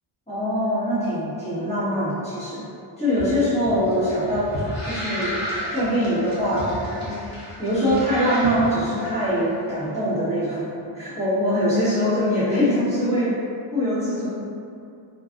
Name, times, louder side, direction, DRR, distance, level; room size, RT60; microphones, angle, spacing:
voice 1, 0.3-2.6 3.0-5.4 5.7-7.1 7.6-13.4 13.7-14.3, equal, 15° left, -14 dB, 1.4 m, -23 dB
sound 1, 3.1-9.4, equal, 35° left, 1.0 m, -33 dB
3.2 x 2.4 x 2.5 m, 2.5 s
wide cardioid pair, 110°, 49 cm